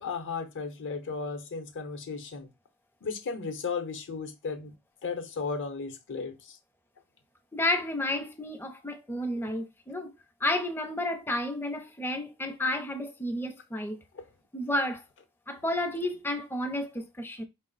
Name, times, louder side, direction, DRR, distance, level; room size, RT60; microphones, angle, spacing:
voice 1, 0.0-2.5 3.0-4.7 5.0-6.6 14.1-14.2, left 4 dB, 55° left, 0.7 m, -35 dB
voice 2, 7.5-10.1 10.4-14.0 14.5-15.0 15.5-17.4, left 1 dB, 10° left, 0.4 m, -31 dB
4.7 x 2.0 x 3.8 m
head